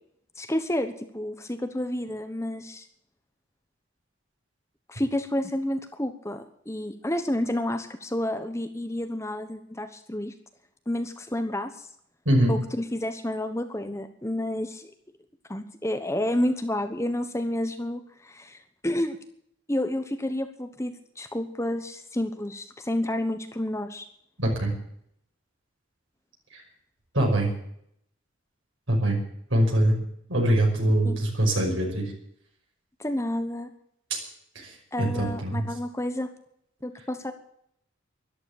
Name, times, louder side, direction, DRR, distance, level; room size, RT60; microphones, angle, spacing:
voice 1, 0.4-2.9 4.9-10.3 10.9-11.9 12.5-14.9 15.5-19.2 19.7-24.1 31.0-31.2 33.0-33.7 34.9-36.3 36.8-37.3, left 1 dB, 15° left, 8 dB, 1.0 m, -30 dB
voice 2, 24.4-24.7 26.5-26.6 27.1-27.5 28.9-29.2 29.5-30.0 30.3-32.1 34.1-34.2 34.5-35.6, right 1 dB, 80° right, -1 dB, 5.8 m, -23 dB
13.5 x 12.0 x 8.7 m, 0.70 s
head